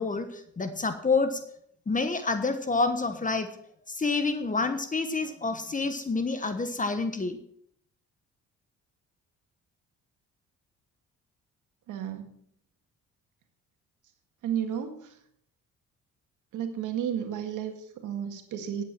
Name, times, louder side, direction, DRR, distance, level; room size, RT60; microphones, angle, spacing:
voice 1, 0.0-1.4 1.9-3.5 3.9-7.4, left 3 dB, 25° left, 9 dB, 1.3 m, -28 dB
voice 2, 11.9-12.2 14.4-15.0 16.5-18.8, right 9 dB, 85° right, 6 dB, 1.8 m, -32 dB
10.5 x 8.7 x 6.0 m, 0.68 s
cardioid pair, 90°, 30 cm